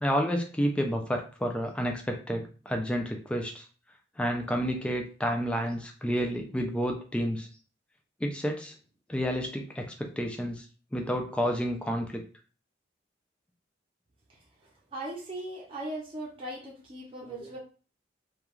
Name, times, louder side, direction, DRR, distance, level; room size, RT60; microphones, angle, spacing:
voice 1, 0.0-3.7 4.2-7.5 8.2-8.7 9.1-10.7 10.9-12.2, equal, 5° left, 2 dB, 0.3 m, -30 dB
voice 2, 14.9-17.6, right 1 dB, 30° right, -4 dB, 0.7 m, -38 dB
2.4 x 2.2 x 3.0 m, 0.36 s
head